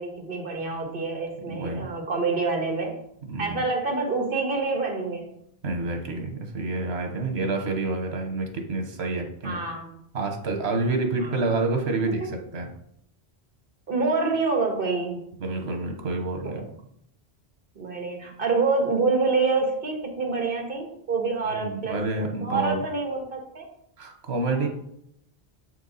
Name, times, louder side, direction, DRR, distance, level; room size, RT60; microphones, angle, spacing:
voice 1, 0.0-3.0 3.4-5.3 9.4-9.9 11.2-11.3 12.2-12.3 13.9-15.2 16.4-16.6 17.7-23.7 24.5-24.7, right 4 dB, 60° right, 2 dB, 1.6 m, -27 dB
voice 2, 1.5-1.9 3.3-3.6 5.6-9.6 10.1-12.7 15.4-16.6 21.5-22.8 24.0-24.7, right 3 dB, 85° right, 4 dB, 1.4 m, -28 dB
7.0 x 4.6 x 4.0 m, 0.73 s
omnidirectional pair, 1.1 m